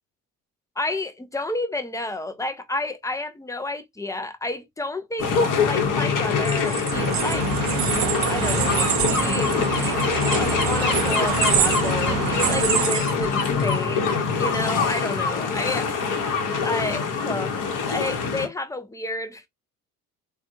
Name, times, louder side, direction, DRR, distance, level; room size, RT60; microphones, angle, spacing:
voice 1, 0.8-7.5 8.3-16.0 16.6-17.5 17.9-19.5, left 2 dB, 10° left, 0.4 m, -31 dB
sound 1, 5.2-18.5, left 5 dB, 45° left, 0.9 m, -24 dB
sound 2, 6.3-13.7, right 9 dB, 40° right, 0.8 m, -28 dB
sound 3, 6.9-12.9, right 10 dB, 65° right, 0.6 m, -29 dB
3.4 x 2.2 x 2.6 m
hypercardioid pair, 60°, 45 cm